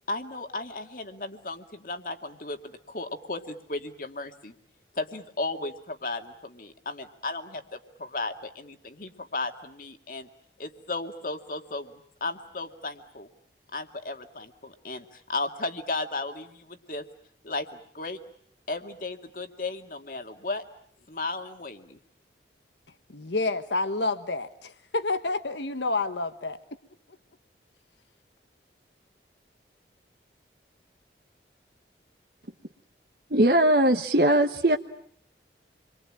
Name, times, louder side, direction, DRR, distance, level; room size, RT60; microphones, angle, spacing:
voice 1, 0.1-2.6 2.9-4.5 5.0-10.3 10.6-11.9 12.2-13.3 13.7-17.0 17.4-18.2 18.7-20.6 21.1-22.0, left 2 dB, 50° left, 7 dB, 2.1 m, -35 dB
voice 2, 23.1-26.6, left 3 dB, 85° left, 10 dB, 1.5 m, -29 dB
voice 3, 33.3-34.8, right 1 dB, 55° right, 6 dB, 1.2 m, -20 dB
28.0 x 23.5 x 8.8 m, 0.63 s
head